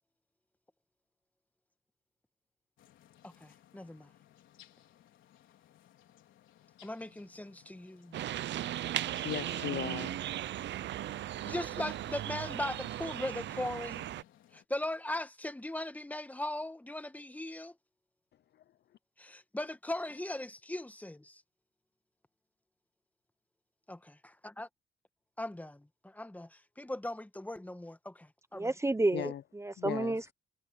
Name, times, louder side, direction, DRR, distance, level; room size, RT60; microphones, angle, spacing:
sound 1, 2.8-14.6, left 12 dB, 80° left, 4.5 m, -62 dB
voice 1, 3.2-4.1 6.8-8.2 11.4-14.0 14.5-17.7 19.2-21.4 23.9-24.7 25.4-28.7, left 1 dB, 10° left, 1.6 m, -39 dB
sound 2, 8.1-14.2, right 13 dB, 65° right, 0.6 m, -37 dB
voice 2, 8.8-10.2 29.1-29.4 29.8-30.2, left 11 dB, 60° left, 0.6 m, -38 dB
voice 3, 28.5-30.3, right 2 dB, 15° right, 0.9 m, -31 dB
cardioid pair, 90°, 20 cm